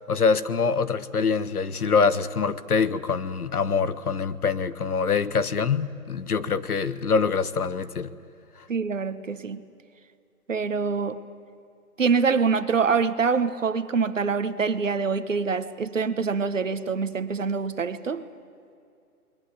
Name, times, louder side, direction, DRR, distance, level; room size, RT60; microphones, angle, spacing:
voice 1, 0.1-8.1, left 5 dB, 70° left, 1.3 m, -24 dB
voice 2, 8.7-9.6 10.5-11.2 12.0-18.2, right 5 dB, 55° right, 1.4 m, -25 dB
28.5 x 21.5 x 8.5 m
hypercardioid pair, 180°, 46 cm